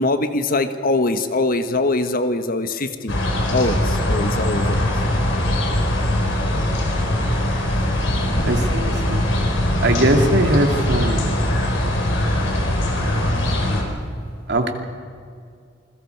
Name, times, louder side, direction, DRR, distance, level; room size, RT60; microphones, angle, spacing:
voice 1, 0.0-3.1 3.5-4.9, left 2 dB, 50° left, 9 dB, 1.2 m, -22 dB
sound 1, 3.1-13.8, left 1 dB, 75° left, 3.8 m, -21 dB
voice 2, 8.5-9.2 9.8-11.3 14.5-14.7, right 1 dB, 60° right, 4 dB, 2.1 m, -20 dB
28.0 x 21.5 x 4.7 m, 2.3 s
head